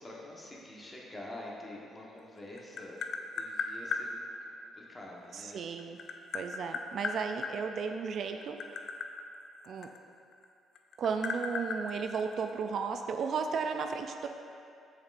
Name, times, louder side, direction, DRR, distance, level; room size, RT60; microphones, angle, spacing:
voice 1, 0.0-3.0 3.3-5.6, left 1 dB, 20° left, -4 dB, 1.2 m, -47 dB
Tap, 2.2-4.1 5.4-7.5 8.3-10.4 10.7-12.7, left 5 dB, 65° left, 0.4 m, -36 dB
voice 2, 5.3-6.0 6.3-8.6 9.7-9.9 11.0-14.3, right 5 dB, 55° right, 5 dB, 0.3 m, -34 dB
7.3 x 6.2 x 2.5 m, 2.5 s
cardioid pair, 110°, 0 cm